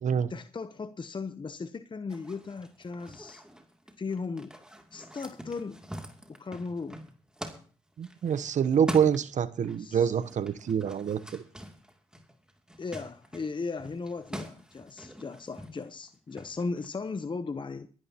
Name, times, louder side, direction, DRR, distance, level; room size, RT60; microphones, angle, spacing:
voice 1, 0.3-3.4 4.0-4.5 4.9-5.8 6.4-7.1 9.7-10.2 12.8-17.9, left 4 dB, 35° left, 0.8 m, -37 dB
sound 1, 2.1-9.8 10.1-16.9, equal, 5° right, 2.6 m, -44 dB
voice 2, 8.0-11.4, right 8 dB, 65° right, 0.8 m, -26 dB
23.5 x 11.0 x 2.9 m
supercardioid pair, 45°, 13 cm